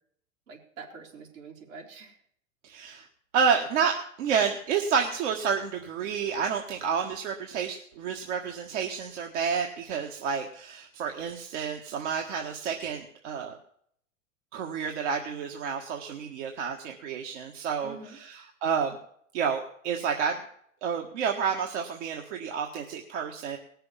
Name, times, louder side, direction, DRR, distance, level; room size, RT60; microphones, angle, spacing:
voice 1, 0.5-2.2 17.8-18.2, right 5 dB, 80° right, -1 dB, 4.0 m, -45 dB
voice 2, 2.6-3.1 3.3-13.6 14.5-19.0 19.3-20.4 20.8-23.6, right 6 dB, 65° right, 2 dB, 1.7 m, -30 dB
19.0 x 6.8 x 7.1 m, 0.66 s
hypercardioid pair, 105°, 39 cm